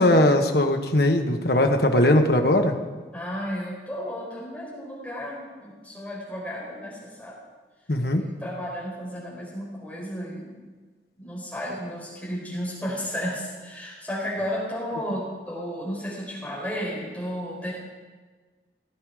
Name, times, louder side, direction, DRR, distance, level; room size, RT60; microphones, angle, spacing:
voice 1, 0.0-2.7 7.9-8.2, left 1 dB, 60° left, 4 dB, 1.2 m, -20 dB
voice 2, 3.1-7.3 8.1-10.6 11.2-17.7, equal, 10° left, -6 dB, 4.7 m, -33 dB
17.0 x 9.8 x 4.9 m, 1.4 s
head